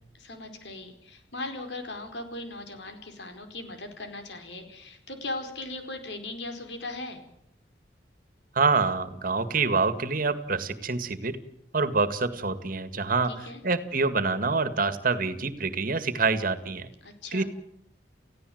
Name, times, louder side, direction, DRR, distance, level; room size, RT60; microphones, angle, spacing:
voice 1, 0.2-7.2 13.3-13.6 17.0-17.4, left 2 dB, 85° left, 6 dB, 4.7 m, -38 dB
voice 2, 8.6-11.4 11.7-13.3 13.6-16.9 17.3-17.4, right 4 dB, 55° right, 11 dB, 1.9 m, -26 dB
29.5 x 16.0 x 7.9 m, 0.78 s
head